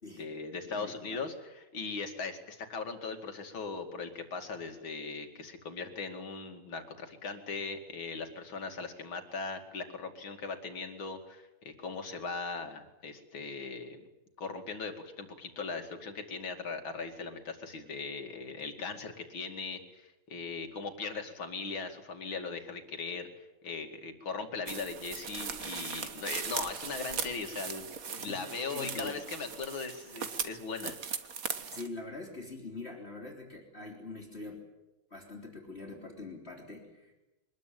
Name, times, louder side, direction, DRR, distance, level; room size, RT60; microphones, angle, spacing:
voice 1, 0.2-14.0 14.4-31.0, left 4 dB, 85° left, 5 dB, 3.2 m, -39 dB
voice 2, 0.7-1.2 18.8-18.9 28.2-29.3 31.7-34.6 35.1-37.1, left 3 dB, 30° left, 0 dB, 4.0 m, -44 dB
sound 1, 24.7-31.9, right 6 dB, 50° right, 1.7 m, -39 dB
24.0 x 21.0 x 9.2 m, 0.98 s
omnidirectional pair, 2.1 m